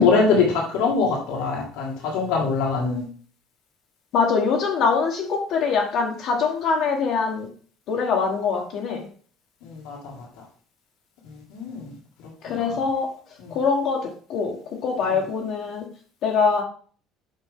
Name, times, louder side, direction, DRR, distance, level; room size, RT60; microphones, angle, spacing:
voice 1, 0.0-3.0 9.6-10.1 11.5-11.9 12.5-12.7 13.4-13.5, left 4 dB, 85° left, -1 dB, 2.3 m, -23 dB
voice 2, 4.1-7.5 7.9-9.0 12.4-13.1 13.5-14.6 14.8-15.9 16.2-16.6, left 5 dB, 55° left, -2 dB, 1.3 m, -23 dB
8.8 x 5.3 x 3.7 m, 0.43 s
cardioid pair, 150°, 0 cm